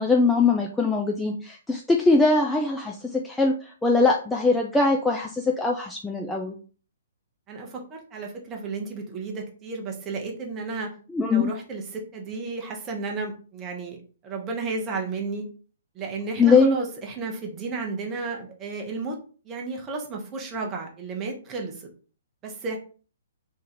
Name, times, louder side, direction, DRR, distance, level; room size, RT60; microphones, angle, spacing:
voice 1, 0.0-6.6 11.1-11.5 16.4-16.7, left 3 dB, 5° left, 0 dB, 0.3 m, -21 dB
voice 2, 7.5-10.9 11.3-14.0 14.2-15.5 15.9-19.2 19.4-21.9 22.4-22.8, right 3 dB, 20° right, 1 dB, 0.8 m, -33 dB
2.8 x 2.5 x 4.1 m, 0.39 s
figure-of-eight pair, 120°, 0 cm